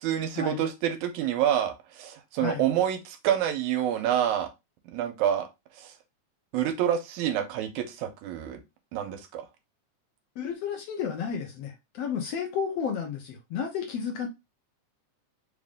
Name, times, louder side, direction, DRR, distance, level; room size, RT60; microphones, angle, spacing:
voice 1, 0.0-4.5 4.9-5.5 5.8-5.9 6.5-8.6 8.9-9.5, right 10 dB, 85° right, 7 dB, 2.1 m, -27 dB
voice 2, 10.4-14.3, left 7 dB, 70° left, 2 dB, 1.6 m, -32 dB
4.9 x 2.5 x 3.5 m, 0.23 s
omnidirectional pair, 3.4 m